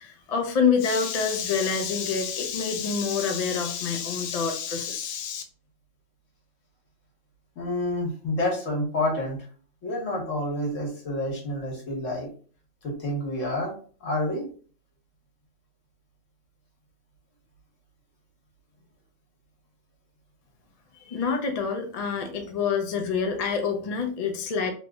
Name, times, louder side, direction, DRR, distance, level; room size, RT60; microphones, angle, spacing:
voice 1, 0.0-5.4 20.9-24.7, left 6 dB, 50° left, 4 dB, 0.4 m, -27 dB
voice 2, 7.6-9.5 9.8-12.3 12.8-13.7 14.0-14.4, left 1 dB, 80° left, -1 dB, 1.5 m, -28 dB
3.1 x 2.0 x 3.5 m, 0.42 s
omnidirectional pair, 1.3 m